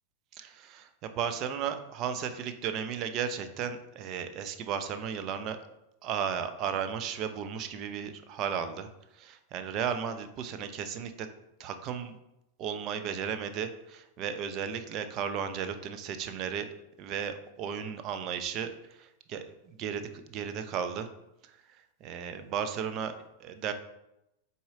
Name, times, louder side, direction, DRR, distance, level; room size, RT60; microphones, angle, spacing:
voice 1, 0.4-5.6 6.0-8.9 9.2-11.3 11.6-12.1 12.6-16.7 17.0-21.1 21.4-21.5 22.0-23.1 23.4-23.7, right 7 dB, 35° right, 8 dB, 0.7 m, -34 dB
7.1 x 4.3 x 3.7 m, 0.87 s
figure-of-eight pair, 90°, 0 cm